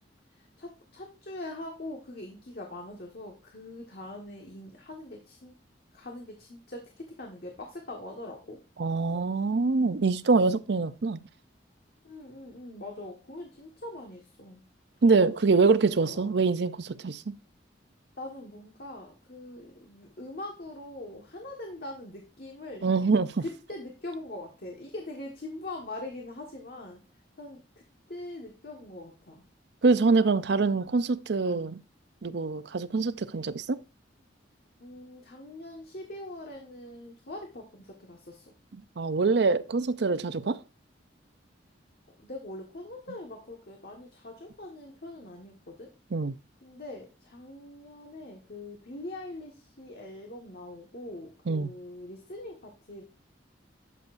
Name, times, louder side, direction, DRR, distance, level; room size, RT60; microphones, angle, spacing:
voice 1, 0.3-5.5 5.9-8.6 12.0-14.6 15.7-16.4 18.2-22.9 23.4-27.0 27.4-27.6 28.1-29.4 34.8-38.5 42.2-45.9 46.6-53.0, left 1 dB, 55° left, 1.5 m, -42 dB
voice 2, 8.8-11.2 15.0-17.4 22.8-23.3 29.8-31.8 32.2-33.8 39.0-40.6 46.1-46.3 51.5-51.7, right 4 dB, 65° right, 0.5 m, -24 dB
12.0 x 7.0 x 2.6 m
head